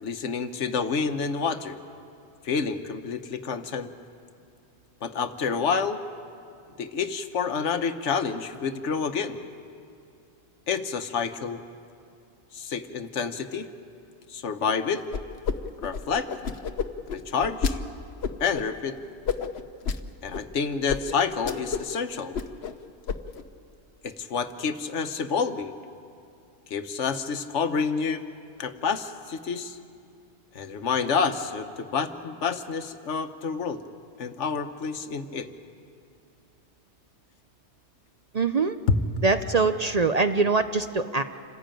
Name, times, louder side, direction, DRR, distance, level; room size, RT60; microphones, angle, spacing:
voice 1, 0.0-1.8 2.4-3.9 5.0-6.0 6.8-9.4 10.7-11.6 12.5-13.7 14.3-15.0 15.8-16.3 17.1-17.8 18.4-19.0 20.2-22.4 24.0-25.7 26.7-28.2 28.6-29.8 30.5-33.8 34.2-35.5 38.9-39.0, left 5 dB, 80° left, 9 dB, 1.3 m, -28 dB
sound 1, 15.1-15.6 15.8-17.7 18.2-18.6 19.3-20.0 20.3-20.4 20.9-21.0 21.3-21.9 22.2-22.7 23.1-23.4, left 6 dB, 65° left, 1.1 m, -29 dB
voice 2, 38.3-38.8 39.2-41.2, right 4 dB, 45° right, 9 dB, 0.6 m, -23 dB
27.0 x 15.5 x 9.0 m, 2.5 s
omnidirectional pair, 1.2 m